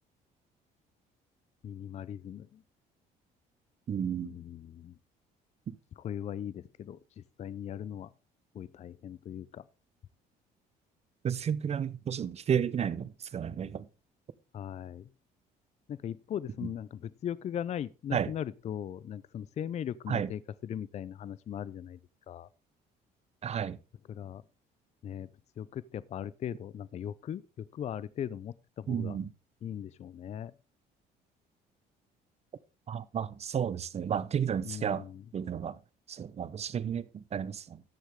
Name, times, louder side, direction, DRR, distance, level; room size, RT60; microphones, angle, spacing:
voice 1, 1.6-2.6 4.2-4.9 6.0-7.0 7.4-8.1 8.5-9.6 14.5-15.1 15.9-22.0 22.3-22.5 24.1-24.4 25.0-25.3 25.6-27.4 27.7-29.2 29.6-30.5 34.7-35.2, left 9 dB, 40° left, 0.5 m, -39 dB
voice 2, 3.9-4.3 5.7-5.8 11.2-13.9 16.6-16.7 18.1-18.3 20.1-20.3 23.4-23.8 28.9-29.3 32.9-35.1 35.3-35.8 36.1-37.8, right 8 dB, 40° right, 0.7 m, -32 dB
13.0 x 8.0 x 3.6 m
cardioid pair, 110°, 17 cm